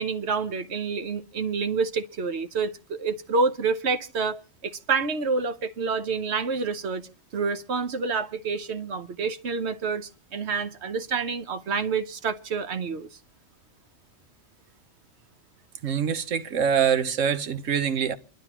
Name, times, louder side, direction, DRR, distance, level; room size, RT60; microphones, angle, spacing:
voice 1, 0.0-13.1, right 4 dB, 60° right, 1.2 m, -28 dB
voice 2, 15.8-18.1, right 7 dB, 80° right, 1.3 m, -24 dB
29.0 x 11.5 x 3.0 m
omnidirectional pair, 1.3 m